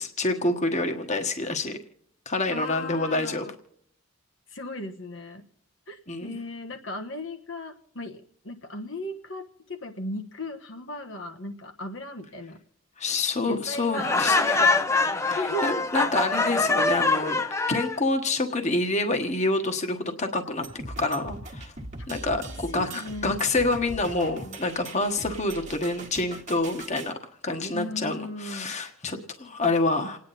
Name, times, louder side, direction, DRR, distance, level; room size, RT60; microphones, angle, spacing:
voice 1, 0.0-1.8 2.3-3.5 6.1-6.4 13.0-14.7 15.3-17.4 17.7-20.7 21.0-21.7 22.1-27.1 27.4-30.2, left 2 dB, 35° left, 5 dB, 1.3 m, -27 dB
voice 2, 2.5-3.5 4.5-5.5 5.9-12.6 13.5-15.0 15.4-15.8 22.5-23.4 27.7-28.8, left 1 dB, 65° left, 5 dB, 1.3 m, -36 dB
Laughter, 13.9-18.0, left 3 dB, 15° left, 0.7 m, -24 dB
sound 1, 20.6-27.1, right 2 dB, 35° right, 1.4 m, -40 dB
28.5 x 9.7 x 4.2 m, 0.70 s
head